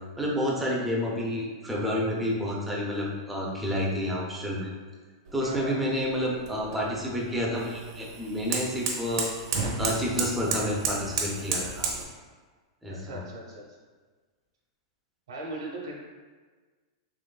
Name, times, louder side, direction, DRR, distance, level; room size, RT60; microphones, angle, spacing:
voice 1, 0.2-4.7 5.3-9.3 9.8-11.9 12.8-13.2, equal, 5° right, -4 dB, 0.5 m, -29 dB
sound 1, 5.3-12.0, right 4 dB, 60° right, 0.8 m, -33 dB
voice 2, 5.4-5.9 12.9-13.6 15.3-15.9, right 1 dB, 85° right, -2 dB, 0.9 m, -38 dB
3.7 x 3.0 x 2.3 m, 1.4 s
supercardioid pair, 155°, 3 cm